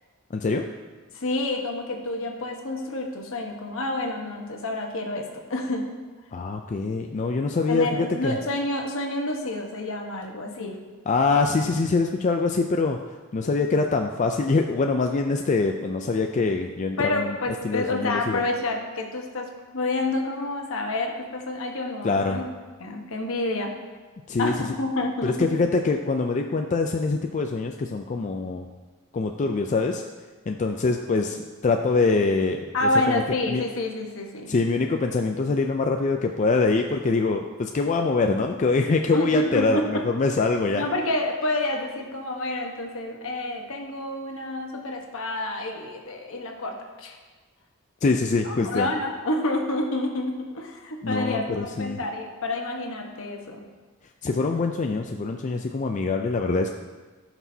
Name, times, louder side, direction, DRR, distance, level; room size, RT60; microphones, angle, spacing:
voice 1, 0.3-0.7 6.3-8.4 11.1-13.0 13.3-17.4 17.6-18.4 22.0-22.4 24.3-24.5 25.2-28.7 29.1-30.0 30.5-33.2 33.5-33.6 34.5-40.8 48.0-48.9 51.0-52.0 54.2-56.7, left 3 dB, 35° left, 3 dB, 0.4 m, -24 dB
voice 2, 1.1-5.9 7.7-10.8 17.0-22.5 22.8-23.7 24.4-25.5 32.7-34.5 39.1-40.0 40.7-47.2 48.4-53.7, left 2 dB, 70° left, 2 dB, 1.2 m, -28 dB
15.0 x 6.0 x 2.8 m, 1.3 s
head